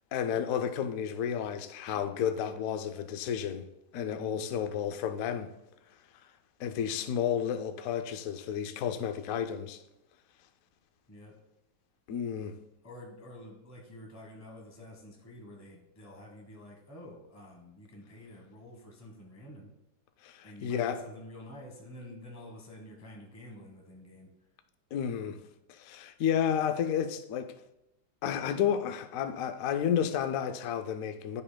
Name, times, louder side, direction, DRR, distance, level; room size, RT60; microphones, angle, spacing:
voice 1, 0.1-5.5 6.6-9.8 12.1-12.6 20.2-21.0 24.9-25.4 25.7-27.5 28.2-31.4, left 8 dB, 80° left, 0.7 m, -31 dB
voice 2, 4.1-4.5 11.1-11.3 12.8-19.7 20.4-24.3, left 1 dB, 10° left, 1.1 m, -49 dB
12.0 x 5.4 x 2.3 m
omnidirectional pair, 2.0 m